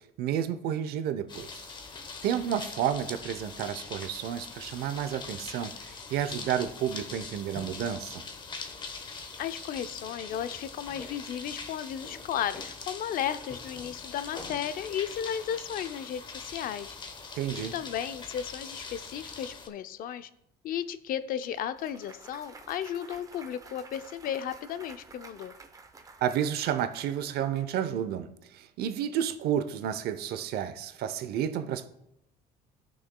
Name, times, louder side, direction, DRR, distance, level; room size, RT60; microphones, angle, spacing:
voice 1, 0.2-1.6 2.2-8.2 17.4-17.7 26.2-31.9, right 9 dB, 65° right, 0.7 m, -31 dB
sound 1, 1.3-19.7, left 4 dB, 25° left, 0.9 m, -42 dB
voice 2, 9.4-17.0 17.7-20.3 20.6-25.5, left 9 dB, 55° left, 0.5 m, -34 dB
Clapping / Cheering / Applause, 21.4-27.7, right 4 dB, 20° right, 0.6 m, -51 dB
16.5 x 6.3 x 2.2 m
cardioid pair, 125°, 17 cm